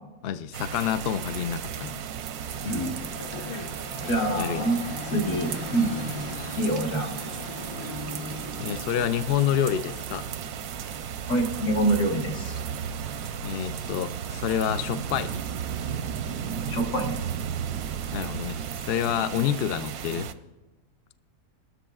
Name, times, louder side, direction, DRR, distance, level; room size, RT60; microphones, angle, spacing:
voice 1, 0.2-2.0 4.3-4.7 8.6-10.3 13.4-15.4 18.1-18.6 18.9-20.3, left 9 dB, 75° left, 11 dB, 0.5 m, -28 dB
sound 1, 0.5-20.3, right 8 dB, 90° right, 1.1 m, -34 dB
sound 2, 2.5-19.6, left 2 dB, 25° left, 0.7 m, -42 dB
voice 2, 4.1-4.8 5.1-5.9 6.6-7.1 11.3-12.6 16.7-17.2, right 1 dB, 60° left, 1 dB, 1.8 m, -26 dB
24.0 x 13.0 x 2.3 m, 1.1 s
omnidirectional pair, 1.6 m